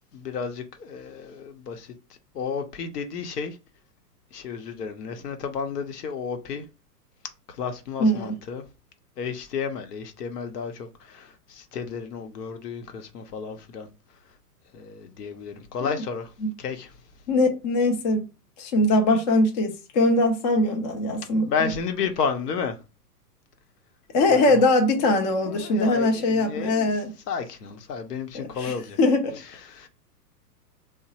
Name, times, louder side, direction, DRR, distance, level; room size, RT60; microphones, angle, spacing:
voice 1, 0.1-1.9 2.3-3.6 4.3-6.6 7.6-8.6 9.2-13.9 14.7-16.3 16.6-16.9 21.5-22.8 24.3-24.6 25.5-26.9 27.3-29.0 29.7-29.9, left 6 dB, 70° left, 0.8 m, -32 dB
voice 2, 8.0-8.3 15.8-15.9 16.4-16.5 17.3-18.2 18.6-21.7 24.1-27.1 28.3-29.3, left 2 dB, 30° left, 0.4 m, -22 dB
2.9 x 2.0 x 2.8 m
hypercardioid pair, 120°, 49 cm